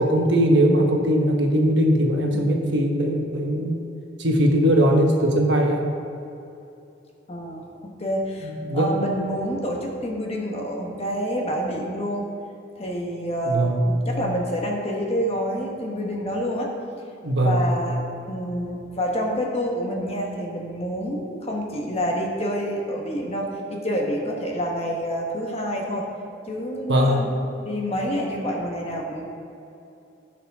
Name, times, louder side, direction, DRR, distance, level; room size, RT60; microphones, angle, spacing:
voice 1, 0.0-3.8 4.2-5.8 8.6-8.9 13.4-13.8 17.2-17.6 26.9-27.2, equal, 65° right, 1 dB, 1.3 m, -20 dB
voice 2, 7.3-12.3 12.7-16.7 17.3-26.1 26.5-27.3 27.6-29.2, equal, 35° left, 0 dB, 1.3 m, -28 dB
15.5 x 6.3 x 3.6 m, 2.8 s
head